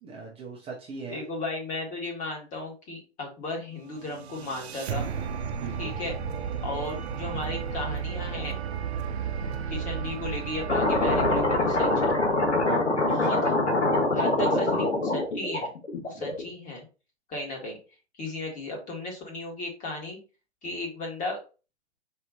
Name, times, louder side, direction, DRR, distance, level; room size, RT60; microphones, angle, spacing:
voice 1, 0.0-1.2 5.6-5.9 10.0-10.2 12.6-13.4 14.1-14.6 16.1-16.3, right 5 dB, 15° right, -3 dB, 0.8 m, -38 dB
voice 2, 1.1-5.1 5.8-6.2 6.6-8.6 9.7-12.2 13.0-13.5 14.1-15.7 16.0-16.8 17.3-17.8 18.2-20.2 20.6-21.4, left 2 dB, 25° left, 0 dB, 1.8 m, -35 dB
sound 1, 3.9-13.0, right 7 dB, 65° right, 0.7 m, -34 dB
sound 2, 10.7-16.5, left 2 dB, 85° left, 1.3 m, -24 dB
4.5 x 2.9 x 3.9 m, 0.32 s
figure-of-eight pair, 120°, 34 cm